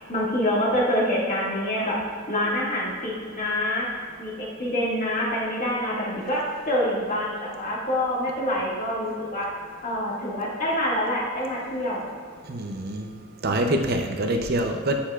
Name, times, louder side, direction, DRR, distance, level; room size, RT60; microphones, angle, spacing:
voice 1, 0.1-2.0 2.3-3.9 4.2-9.5 9.8-12.1, left 1 dB, 40° left, -5 dB, 2.1 m, -26 dB
voice 2, 12.5-13.2 13.4-15.0, right 1 dB, 50° right, 3 dB, 0.7 m, -25 dB
11.5 x 8.7 x 2.5 m, 2.1 s
head